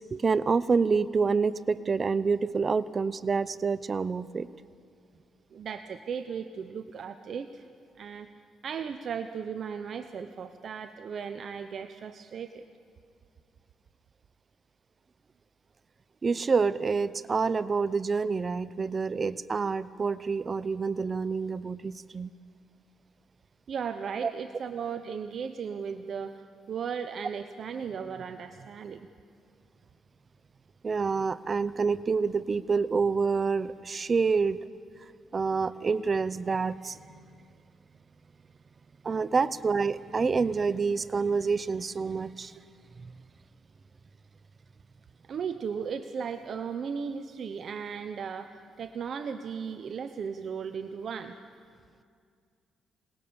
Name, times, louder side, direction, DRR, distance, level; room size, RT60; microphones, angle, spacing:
voice 1, 0.1-4.5 16.2-22.3 24.2-24.3 30.8-34.6 35.3-37.0 39.0-42.6, right 5 dB, 35° right, 16 dB, 0.6 m, -27 dB
voice 2, 5.5-7.7 8.0-8.3 8.6-12.6 23.7-29.1 45.3-51.4, right 6 dB, 55° right, 9 dB, 0.9 m, -36 dB
27.0 x 20.0 x 7.0 m, 2.2 s
cardioid pair, 90°, 0 cm